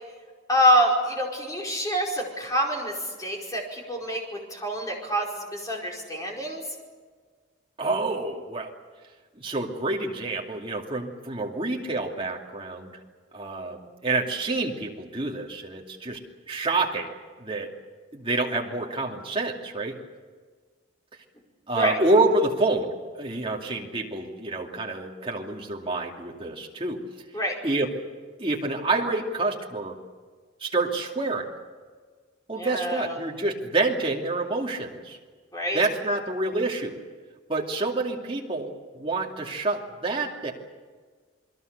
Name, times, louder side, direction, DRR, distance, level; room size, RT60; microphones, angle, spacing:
voice 1, 0.5-2.9 3.2-4.2 4.5-6.6 21.7-22.0 27.3-27.5 32.6-33.2 35.5-35.8, equal, 20° left, -1 dB, 4.9 m, -26 dB
voice 2, 7.8-8.7 9.4-12.9 13.3-16.2 16.5-17.1 17.4-17.7 18.1-20.0 21.7-27.0 27.6-27.9 28.4-30.0 30.6-31.5 32.5-35.2 35.7-37.0 37.5-40.5, right 2 dB, 25° right, 0 dB, 2.6 m, -27 dB
28.5 x 21.0 x 6.8 m, 1.5 s
head